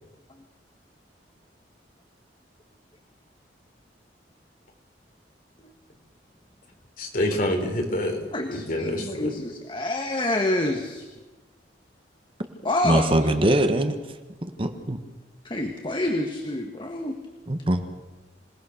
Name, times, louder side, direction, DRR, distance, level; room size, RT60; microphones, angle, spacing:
voice 1, 7.0-8.2 8.5-9.3, left 1 dB, 50° left, 2 dB, 4.5 m, -26 dB
voice 2, 8.3-11.1 12.6-13.1 15.4-17.2, left 1 dB, 30° left, 4 dB, 1.6 m, -27 dB
voice 3, 12.8-14.0 14.4-15.0 17.5-17.8, right 1 dB, 30° right, 8 dB, 1.3 m, -22 dB
26.5 x 18.5 x 6.6 m, 1.2 s
head